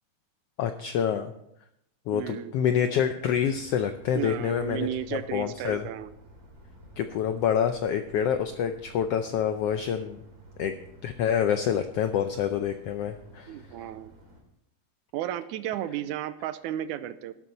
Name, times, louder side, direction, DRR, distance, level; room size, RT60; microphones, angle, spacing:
voice 1, 0.6-1.3 2.1-5.9 7.0-10.2 10.6-10.7 11.0-13.5, left 8 dB, 90° left, 8 dB, 1.3 m, -27 dB
voice 2, 2.1-2.5 4.2-6.1 13.5-14.1 15.1-17.3, right 11 dB, 90° right, 13 dB, 2.1 m, -33 dB
sound 1, 3.2-14.4, right 1 dB, 30° right, 2.6 m, -52 dB
12.0 x 12.0 x 4.2 m, 0.80 s
omnidirectional pair, 3.5 m